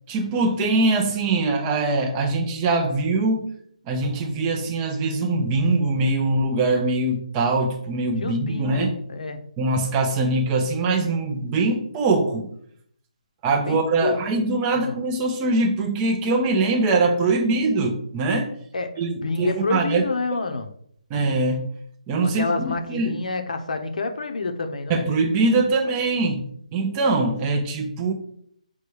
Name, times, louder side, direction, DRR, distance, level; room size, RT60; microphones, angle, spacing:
voice 1, 0.1-3.5 3.9-9.0 9.6-12.5 13.4-18.5 19.0-20.1 21.1-21.7 22.1-23.2 24.9-26.4 26.7-28.1, right 3 dB, 15° right, 4 dB, 0.5 m, -22 dB
voice 2, 8.2-9.4 13.7-14.2 14.7-15.0 18.7-20.7 22.3-25.1, left 3 dB, 70° left, 5 dB, 0.7 m, -28 dB
6.5 x 2.2 x 3.1 m, 0.66 s
hypercardioid pair, 165°, 4 cm